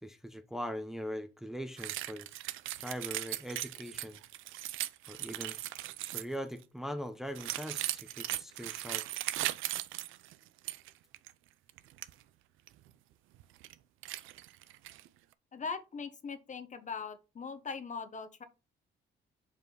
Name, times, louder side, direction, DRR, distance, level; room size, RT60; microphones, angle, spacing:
voice 1, 0.0-2.3 2.8-4.2 5.1-5.6 6.1-9.3, equal, ahead, 0.7 m, -41 dB
sound 1, 1.8-6.4 7.3-10.9 11.1-11.3 11.7-12.1 12.7-12.8 13.3-13.7 14.0-15.1, right 15 dB, 90° right, 0.5 m, -38 dB
voice 2, 15.5-18.4, left 5 dB, 40° left, 1.1 m, -40 dB
5.3 x 4.8 x 3.9 m
cardioid pair, 90°, 20 cm